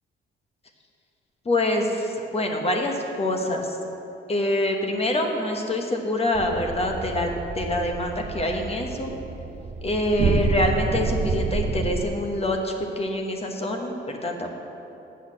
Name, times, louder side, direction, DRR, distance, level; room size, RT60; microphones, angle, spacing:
voice 1, 1.4-3.8 4.3-9.1 9.8-14.6, left 1 dB, 30° left, 2 dB, 1.1 m, -25 dB
sound 1, 6.3-12.0, right 4 dB, 40° right, 0.5 m, -28 dB
8.0 x 6.5 x 6.4 m, 3.0 s
cardioid pair, 90°, 20 cm